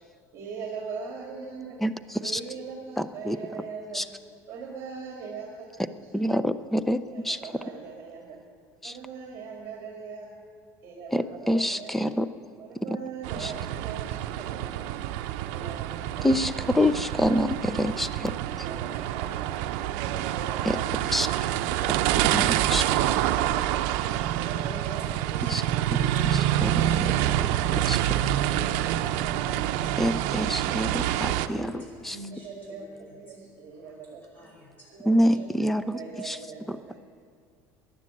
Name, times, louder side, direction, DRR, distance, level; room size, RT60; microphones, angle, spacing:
voice 1, 0.3-1.8 2.2-4.1 4.5-6.2 7.1-8.4 8.8-10.3 10.8-12.2 12.6-14.9 15.5-16.7 18.5-19.6 20.0-21.8 24.4-25.8 26.3-27.8 28.4-29.6 31.1-31.7 32.3-34.2 34.9-35.5 35.9-37.0, right 5 dB, 40° right, 1 dB, 1.9 m, -41 dB
voice 2, 1.8-2.4 3.0-3.4 3.9-4.0 6.1-7.4 8.8-9.0 11.1-12.3 12.9-13.0 13.4-13.5 16.2-18.4 20.6-20.8 21.1-21.3 22.3-23.1 25.5-25.6 25.9-26.0 26.2-27.1 27.9-28.1 30.0-32.2 35.0-36.4, equal, 5° left, 13 dB, 0.4 m, -27 dB
sound 1, 13.2-31.5, right 12 dB, 75° right, 0.6 m, -27 dB
voice 3, 25.0-25.6 29.4-30.2 31.5-32.7 33.1-33.5 33.8-34.0 34.3-35.2 35.6-36.1, equal, 25° left, -2 dB, 5.2 m, -47 dB
14.0 x 10.5 x 8.7 m, 2.2 s
cardioid pair, 160°, 7 cm